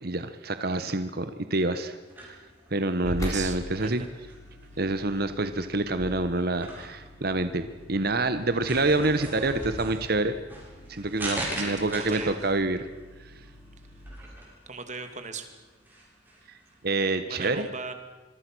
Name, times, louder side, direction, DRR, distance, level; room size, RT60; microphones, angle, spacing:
voice 1, 0.0-2.4 2.7-4.0 4.8-7.6 7.9-10.3 10.9-12.8 16.8-17.7, right 2 dB, 55° right, 10 dB, 1.3 m, -27 dB
sound 1, 2.0-17.0, right 1 dB, 10° right, 7.9 m, -42 dB
sound 2, 3.0-14.1, equal, 20° left, 7.1 m, -43 dB
voice 2, 3.0-4.0 11.6-12.4 14.7-15.5 17.3-17.9, right 4 dB, 40° right, 7 dB, 2.7 m, -38 dB
26.5 x 23.0 x 6.3 m, 1.2 s
head